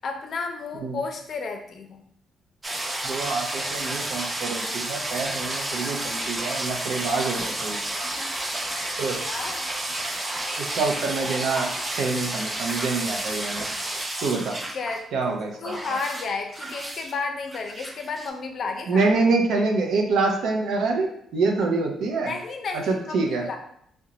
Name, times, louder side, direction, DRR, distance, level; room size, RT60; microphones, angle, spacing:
voice 1, 0.0-2.0 8.0-8.3 8.7-9.0 9.3-9.7 14.5-15.1 15.6-19.1 19.6-19.7 22.1-23.6, left 4 dB, 55° left, 4 dB, 0.5 m, -32 dB
sound 1, 2.6-15.0 15.3-17.1 17.5-18.3, right 1 dB, 25° right, 0.5 m, -31 dB
voice 2, 3.0-7.8 9.0-9.2 10.6-13.7 14.2-14.6 15.1-15.8 18.9-22.3 22.7-23.4, right 3 dB, 75° right, 2 dB, 0.5 m, -26 dB
3.8 x 2.1 x 2.9 m, 0.69 s
cardioid pair, 90°, 0 cm